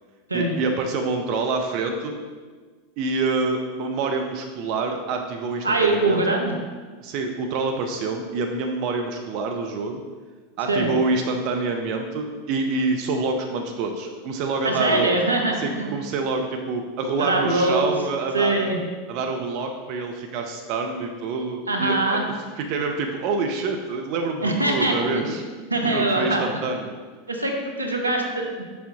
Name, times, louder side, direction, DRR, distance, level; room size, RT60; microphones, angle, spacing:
voice 1, 0.3-2.1 3.0-6.2 7.0-10.0 10.6-15.1 15.6-18.7 19.1-22.0 22.6-25.4 25.8-26.9, right 3 dB, 50° right, 4 dB, 0.5 m, -26 dB
voice 2, 5.6-6.5 10.7-10.9 14.6-15.9 17.2-17.9 18.3-18.8 21.7-22.2 24.4-25.3 25.7-26.4 27.3-28.6, right 2 dB, 90° right, 2 dB, 0.8 m, -23 dB
6.3 x 5.6 x 2.8 m, 1.4 s
hypercardioid pair, 90°, 0 cm